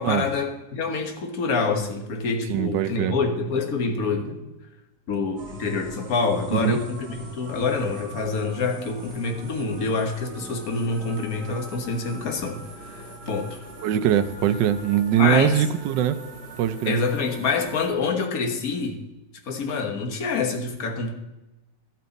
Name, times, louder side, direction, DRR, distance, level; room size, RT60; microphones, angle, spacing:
voice 1, 0.0-4.4 5.1-7.1 7.3-12.6 12.9-13.6 15.2-15.6 16.8-19.0 19.5-21.1, left 4 dB, 55° left, 3 dB, 1.7 m, -26 dB
voice 2, 2.5-3.2 6.5-6.8 13.8-16.2 16.6-17.0, right 10 dB, 75° right, 12 dB, 1.3 m, -22 dB
sound 1, 5.4-17.9, right 2 dB, 35° right, 1.5 m, -42 dB
13.0 x 8.9 x 4.1 m, 0.99 s
omnidirectional pair, 2.0 m